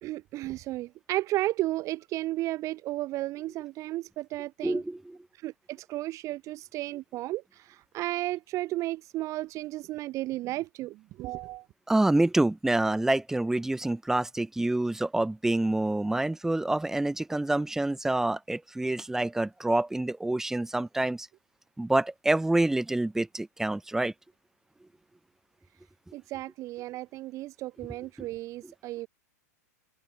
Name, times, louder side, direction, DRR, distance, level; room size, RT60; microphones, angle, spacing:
voice 1, 0.0-4.8 5.4-11.6 26.1-29.1, right 17 dB, 35° right, 0.5 m, -33 dB
voice 2, 4.6-5.2 11.9-21.3 21.8-24.1 28.2-28.3 28.6-28.7, right 2 dB, 5° right, 0.9 m, -27 dB
hypercardioid pair, 105°, 9 cm